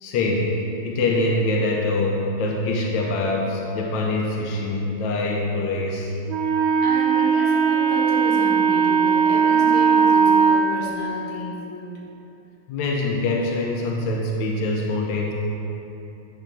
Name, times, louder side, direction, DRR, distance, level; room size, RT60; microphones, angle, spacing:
voice 1, 0.0-6.1 12.7-15.3, left 2 dB, 70° left, -2 dB, 1.4 m, -24 dB
Wind instrument woodwind instrument, 6.3-10.6, right 6 dB, 75° right, 1.5 m, -18 dB
voice 2, 6.8-11.9, left 1 dB, 85° left, -4 dB, 2.4 m, -32 dB
9.9 x 3.5 x 5.8 m, 2.9 s
omnidirectional pair, 2.3 m